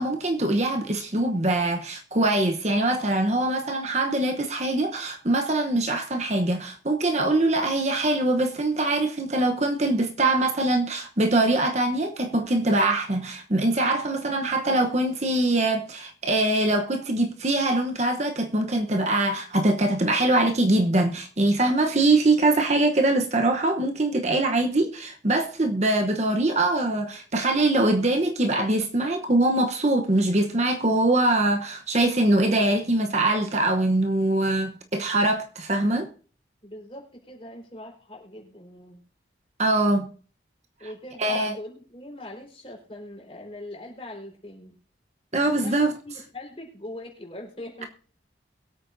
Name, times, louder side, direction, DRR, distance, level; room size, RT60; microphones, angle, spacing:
voice 1, 0.0-36.1 39.6-40.1 41.2-41.5 45.3-45.9, right 2 dB, 35° right, 1.0 m, -23 dB
voice 2, 36.6-39.0 40.8-44.7 45.5-47.9, left 1 dB, 30° left, 4.4 m, -41 dB
22.5 x 8.6 x 2.7 m
head